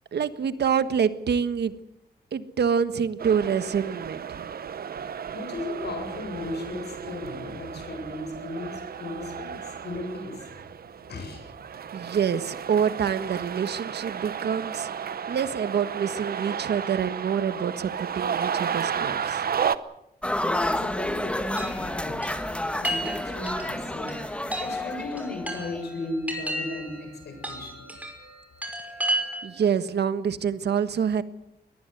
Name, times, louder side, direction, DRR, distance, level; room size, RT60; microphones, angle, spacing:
voice 1, 0.1-1.7 2.3-4.5 11.9-14.9 15.3-19.4 29.4-31.2, right 7 dB, 85° right, 12 dB, 1.4 m, -26 dB
sound 1, 3.2-19.7, right 7 dB, 65° right, 0.9 m, -33 dB
voice 2, 5.3-10.5 11.1-11.4 20.4-22.2 22.8-24.2 24.6-27.9, left 2 dB, 85° left, 5 dB, 7.6 m, -36 dB
Loyola Field, 20.2-25.8, left 1 dB, 5° left, 1.4 m, -30 dB
Chime, 21.6-29.7, right 1 dB, 10° right, 5.4 m, -34 dB
22.5 x 19.0 x 8.0 m, 0.85 s
wide cardioid pair, 155°, 17 cm